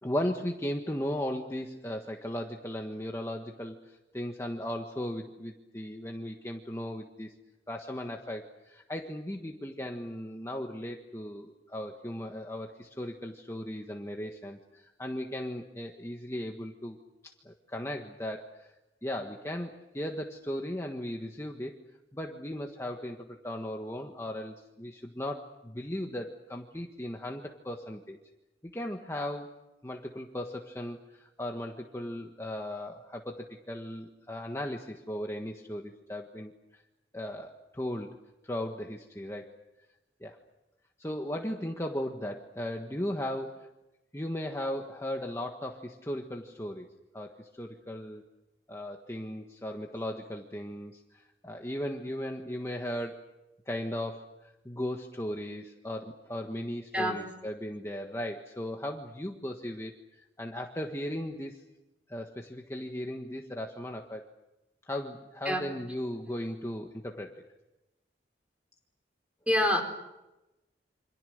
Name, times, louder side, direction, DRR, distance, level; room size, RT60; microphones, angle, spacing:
voice 1, 0.0-7.3 7.7-18.7 19.0-21.8 22.1-28.2 28.6-29.5 29.8-36.8 37.1-38.1 38.4-39.5 40.2-40.4 41.0-43.7 44.1-46.9 47.1-48.2 48.7-53.2 53.7-61.6 62.1-64.3 64.9-67.4, left 1 dB, 15° left, 2 dB, 1.5 m, -37 dB
voice 2, 56.9-57.2 65.4-65.7 69.5-69.8, equal, 5° right, 4 dB, 4.4 m, -26 dB
28.5 x 26.5 x 6.6 m, 0.99 s
head